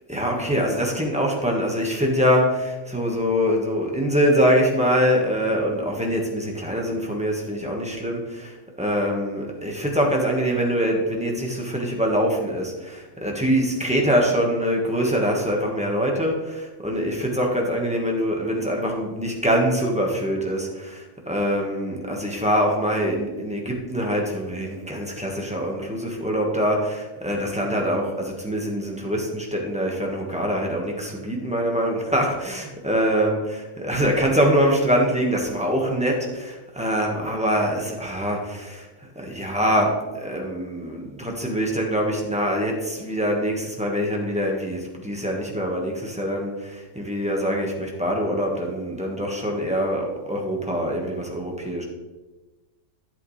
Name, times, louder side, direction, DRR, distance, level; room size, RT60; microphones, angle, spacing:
voice 1, 0.1-38.9 39.1-51.8, equal, 5° right, -1 dB, 1.4 m, -24 dB
10.5 x 8.4 x 3.3 m, 1.1 s
omnidirectional pair, 1.5 m